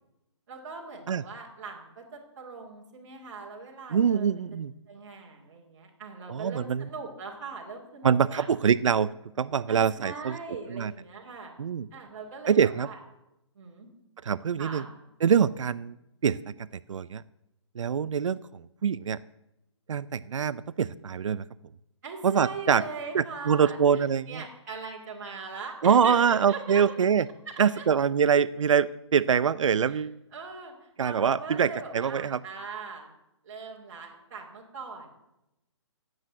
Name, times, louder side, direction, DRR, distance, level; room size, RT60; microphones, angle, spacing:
voice 1, 0.5-4.4 4.9-8.5 9.7-11.5 11.9-13.0 13.5-13.9 14.6-14.9 22.0-27.0 27.4-27.8 29.8-30.0 30.3-33.1 33.4-35.1, right 4 dB, 35° right, -4 dB, 2.4 m, -40 dB
voice 2, 3.9-4.7 6.3-6.9 8.0-9.1 9.4-10.4 10.7-10.9 11.6-11.9 12.5-12.9 14.2-14.8 15.2-15.9 16.2-16.4 16.9-17.2 17.8-19.2 19.9-21.4 22.2-22.8 23.1-24.4 25.8-27.3 27.6-30.1 31.0-32.4, right 7 dB, 80° right, 16 dB, 0.5 m, -24 dB
17.0 x 8.0 x 7.9 m, 0.90 s
hypercardioid pair, 170°, 16 cm